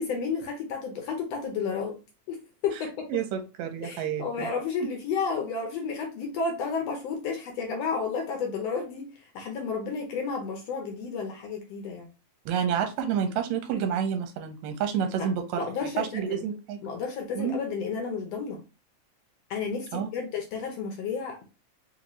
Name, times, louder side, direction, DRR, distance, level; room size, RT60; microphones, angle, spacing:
voice 1, 0.0-2.0 2.3-2.4 2.6-3.1 3.8-9.1 9.4-12.1 15.2-16.4 16.8-18.6 19.5-21.5, left 5 dB, 75° left, 2 dB, 1.6 m, -32 dB
voice 2, 3.1-4.5 12.5-16.8 17.3-17.6 19.9-20.1, right 8 dB, 80° right, 6 dB, 1.9 m, -29 dB
4.4 x 2.6 x 3.0 m, 0.29 s
omnidirectional pair, 3.3 m